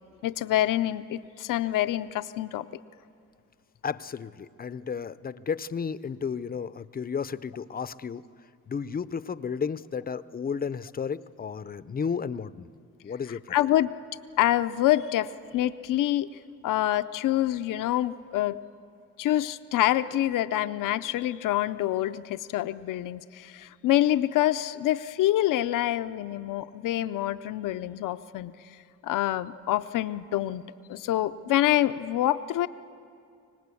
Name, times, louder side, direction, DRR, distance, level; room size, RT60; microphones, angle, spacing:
voice 1, 0.2-2.6 13.5-13.9 14.4-15.3 15.5-16.3 16.6-18.6 19.2-28.5 29.0-30.6 30.9-32.7, left 13 dB, 85° left, 11 dB, 0.6 m, -26 dB
voice 2, 3.8-8.2 8.7-12.7 13.0-13.6, left 6 dB, 30° left, 16 dB, 0.5 m, -33 dB
24.5 x 19.0 x 8.4 m, 2.3 s
cardioid pair, 105°, 31 cm